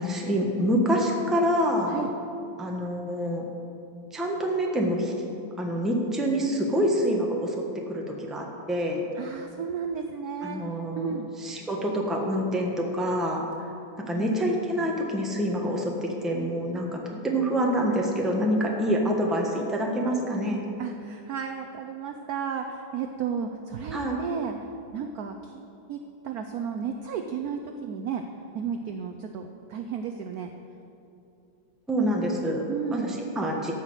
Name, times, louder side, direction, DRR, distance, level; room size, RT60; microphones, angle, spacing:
voice 1, 0.0-1.9 2.6-3.5 4.1-5.1 5.6-7.5 7.9-9.0 10.4-13.7 14.1-20.6 23.9-24.2 31.9-32.6 32.9-33.7, equal, ahead, 0 dB, 0.8 m, -26 dB
voice 2, 9.1-10.6 11.0-11.3 14.1-14.6 20.8-24.6 24.9-26.0 26.2-28.2 28.5-30.5 32.7-33.2, right 7 dB, 75° right, 5 dB, 0.8 m, -33 dB
13.0 x 5.8 x 7.9 m, 2.7 s
omnidirectional pair, 2.3 m